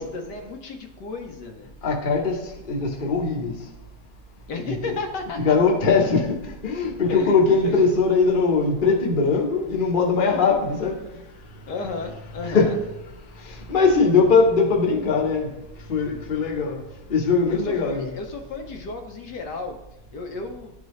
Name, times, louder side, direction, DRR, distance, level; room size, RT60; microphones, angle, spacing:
voice 1, 0.0-1.7 4.5-5.6 7.1-7.4 7.6-7.8 11.7-12.8 17.5-19.8 20.1-20.7, left 3 dB, 70° left, 3 dB, 1.3 m, -33 dB
voice 2, 1.8-2.4 2.7-3.5 4.6-5.0 5.4-10.9 12.4-12.7 13.4-15.5 15.9-16.8 17.1-18.1, left 4 dB, 35° left, -1 dB, 1.0 m, -21 dB
11.5 x 3.9 x 3.1 m, 0.94 s
omnidirectional pair, 1.9 m